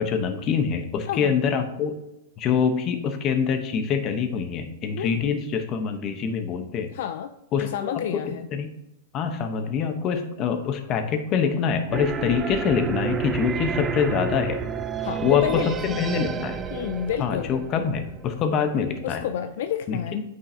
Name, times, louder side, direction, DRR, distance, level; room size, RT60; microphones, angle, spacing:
voice 1, 0.0-2.0 2.4-6.9 7.5-8.7 9.1-14.6 15.2-16.6 17.2-19.2 19.9-20.2, left 6 dB, 35° left, 7 dB, 0.9 m, -25 dB
voice 2, 5.0-5.3 6.9-7.3 7.6-8.5 15.0-16.2 16.7-17.9 19.0-20.2, left 9 dB, 65° left, 9 dB, 0.4 m, -30 dB
sound 1, 11.9-18.7, right 6 dB, 20° right, 0.5 m, -31 dB
8.5 x 5.4 x 2.8 m, 0.89 s
hypercardioid pair, 130°, 0 cm